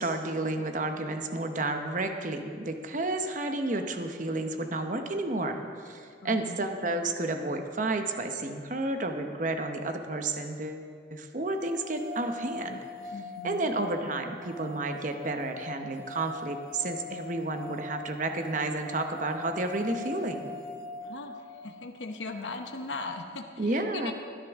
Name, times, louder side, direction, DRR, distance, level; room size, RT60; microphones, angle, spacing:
voice 1, 0.0-5.6 5.8-10.8 11.1-12.8 13.4-20.5 23.6-24.1, right 2 dB, 45° right, 6 dB, 0.8 m, -31 dB
voice 2, 6.2-6.6 13.1-13.7 21.0-24.1, left 3 dB, 90° left, 4 dB, 0.9 m, -39 dB
sound 1, 11.6-21.8, left 3 dB, 60° left, 1.7 m, -42 dB
20.0 x 10.5 x 3.6 m, 2.2 s
head